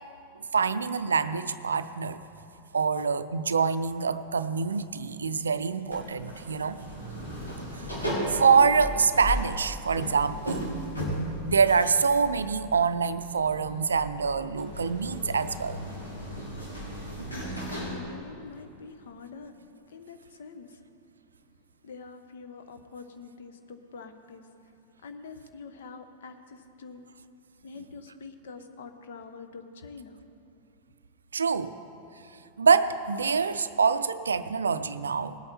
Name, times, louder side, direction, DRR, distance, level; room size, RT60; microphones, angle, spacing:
voice 1, 0.5-2.2 2.7-6.8 7.8-8.0 8.3-10.8 11.5-15.8 17.2-17.4 31.3-31.8 32.6-35.4, right 5 dB, 70° right, 13 dB, 0.4 m, -25 dB
sound 1, 5.9-18.0, equal, 80° left, 2.9 m, -36 dB
voice 2, 17.3-19.5 19.9-20.8 21.8-24.5 25.0-27.0 27.6-30.2, left 4 dB, 60° left, 8 dB, 0.9 m, -45 dB
19.5 x 8.6 x 4.3 m, 2.7 s
figure-of-eight pair, 90°, 0 cm